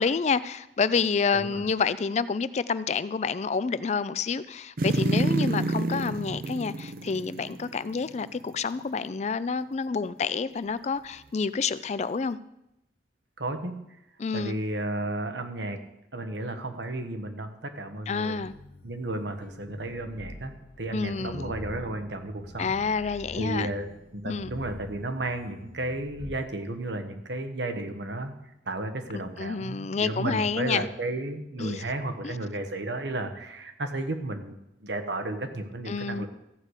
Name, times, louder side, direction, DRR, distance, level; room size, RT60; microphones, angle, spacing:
voice 1, 0.0-12.4 14.2-14.6 18.1-18.5 20.9-21.5 22.6-23.7 24.2-24.5 29.4-30.9 31.6-31.8 32.2-32.4 35.9-36.3, left 5 dB, 40° left, 16 dB, 0.4 m, -28 dB
voice 2, 1.3-1.6 13.4-13.8 14.3-15.8 16.1-18.4 18.8-22.8 23.4-28.3 28.7-36.3, right 2 dB, 85° right, 7 dB, 1.3 m, -33 dB
sound 1, 4.8-8.2 8.5-8.6, right 2 dB, 55° right, 0.6 m, -28 dB
sound 2, 18.4-26.4, left 1 dB, 55° left, 0.8 m, -46 dB
14.5 x 4.9 x 8.1 m, 0.86 s
head